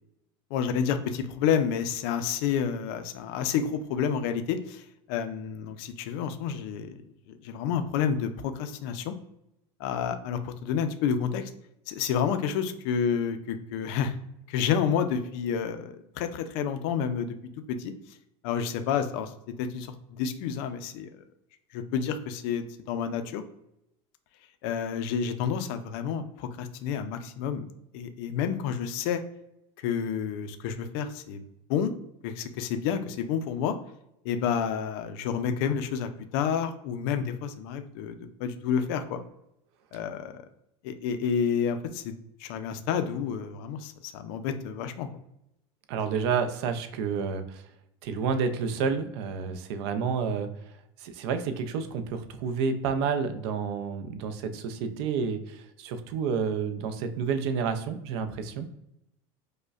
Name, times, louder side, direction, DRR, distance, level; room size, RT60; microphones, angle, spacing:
voice 1, 0.5-7.0 7.4-9.1 9.8-11.5 11.9-14.1 14.5-17.3 17.7-17.9 18.4-19.3 19.6-21.1 21.7-23.4 24.6-27.7 27.9-29.2 29.8-31.4 31.7-31.9 32.2-33.7 34.2-39.2 39.9-40.4 40.8-42.1 42.4-45.1, left 7 dB, 55° left, 9 dB, 0.4 m, -29 dB
voice 2, 45.9-47.6 48.0-50.5 51.0-58.7, right 6 dB, 65° right, 8 dB, 0.5 m, -30 dB
4.9 x 2.1 x 2.3 m, 0.82 s
supercardioid pair, 160°, 14 cm